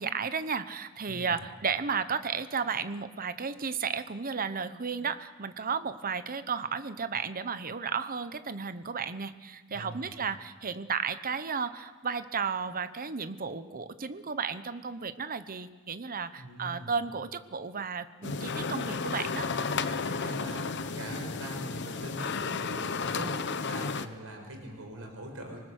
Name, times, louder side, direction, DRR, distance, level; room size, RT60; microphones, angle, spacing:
voice 1, 0.0-19.5, right 5 dB, 45° right, 12 dB, 0.9 m, -33 dB
voice 2, 1.1-1.4 9.7-10.1 16.4-16.9 20.0-25.6, right 1 dB, 75° right, 3 dB, 5.0 m, -42 dB
sound 1, 18.2-24.1, left 4 dB, 55° left, 0.9 m, -33 dB
25.5 x 20.0 x 6.6 m, 1.3 s
head